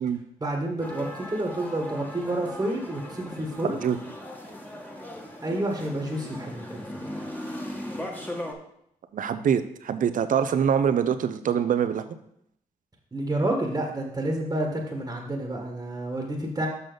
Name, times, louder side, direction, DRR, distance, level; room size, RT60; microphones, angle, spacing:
voice 1, 0.4-3.8 5.4-7.2 13.1-16.7, right 1 dB, 20° right, 1 dB, 1.5 m, -29 dB
sound 1, 0.8-8.5, left 1 dB, 10° left, 1.6 m, -38 dB
voice 2, 9.1-12.0, right 8 dB, 60° right, 10 dB, 0.7 m, -24 dB
6.8 x 6.0 x 4.0 m, 0.73 s
supercardioid pair, 50°, 15 cm